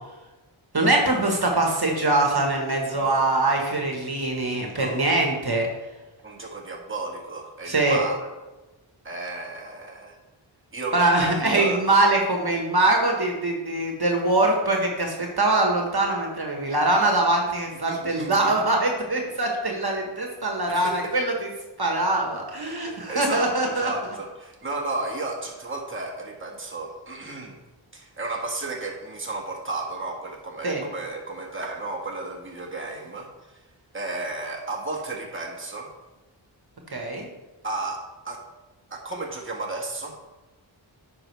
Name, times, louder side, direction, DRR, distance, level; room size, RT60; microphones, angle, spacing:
voice 1, 0.7-5.7 7.6-8.0 10.9-21.5 21.8-23.9 30.6-30.8 36.9-37.3, right 2 dB, 50° right, 1 dB, 1.5 m, -23 dB
voice 2, 2.9-3.3 4.7-5.2 6.2-8.3 9.0-10.2 10.7-11.8 17.9-18.5 20.7-21.1 22.9-27.6 27.9-33.6 33.9-35.9 37.6-38.4 38.9-40.2, right 3 dB, 25° right, -1 dB, 1.5 m, -33 dB
9.7 x 5.7 x 3.4 m, 1.1 s
wide cardioid pair, 50°, 47 cm